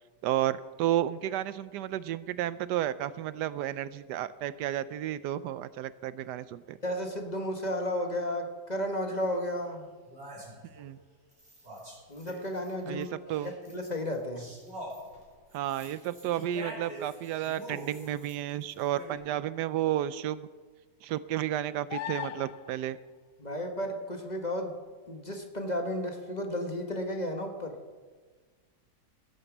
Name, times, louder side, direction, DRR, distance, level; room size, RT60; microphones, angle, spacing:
voice 1, 0.2-6.8 10.8-11.0 12.9-13.5 15.5-20.5 21.0-23.0, right 12 dB, 80° right, 16 dB, 1.2 m, -32 dB
voice 2, 6.8-9.9 12.1-13.1 13.4-14.5 23.4-24.8 25.1-27.8, left 1 dB, 25° left, 4 dB, 1.2 m, -33 dB
sound 1, 9.4-9.5 10.1-10.8 11.3-12.7 13.0-19.1, right 1 dB, 40° right, 4.1 m, -45 dB
sound 2, 21.9-22.8 26.4-26.5, left 14 dB, 85° left, 1.2 m, -37 dB
16.0 x 8.6 x 7.2 m, 1.4 s
omnidirectional pair, 1.8 m